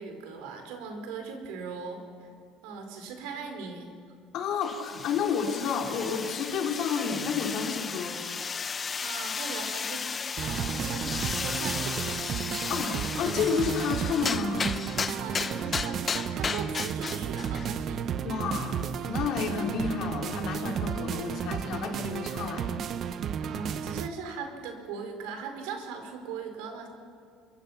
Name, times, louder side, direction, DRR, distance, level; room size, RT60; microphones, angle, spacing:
voice 1, 0.0-2.3 2.6-3.9 9.0-10.0 10.4-12.1 15.0-18.1 23.4-26.9, right 5 dB, 90° right, 5 dB, 4.8 m, -39 dB
voice 2, 4.3-8.2 12.7-14.7 18.2-22.8, left 6 dB, 55° left, 1 dB, 4.0 m, -30 dB
sound 1, 4.6-17.7, left 5 dB, 25° left, 0.7 m, -34 dB
sound 2, 10.4-24.1, right 8 dB, 40° right, 0.8 m, -33 dB
27.5 x 23.5 x 5.9 m, 2.3 s
cardioid pair, 150°, 0 cm